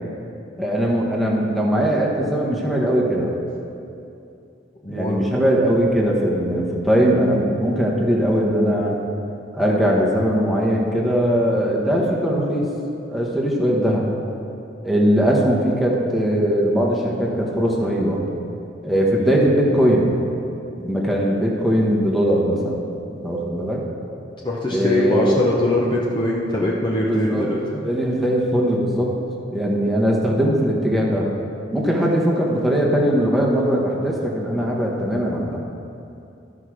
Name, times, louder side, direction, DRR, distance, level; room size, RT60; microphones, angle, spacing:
voice 1, 0.6-3.3 4.9-9.0 9.5-12.7 13.1-14.1 14.8-18.2 18.8-20.1 20.8-22.8 23.1-23.8 24.7-25.4 27.1-29.1 29.5-31.3 31.7-35.6, equal, ahead, -4 dB, 1.2 m, -20 dB
voice 2, 4.8-5.2 24.4-27.8, left 1 dB, 25° left, -4 dB, 0.8 m, -22 dB
13.0 x 4.9 x 6.1 m, 2.7 s
head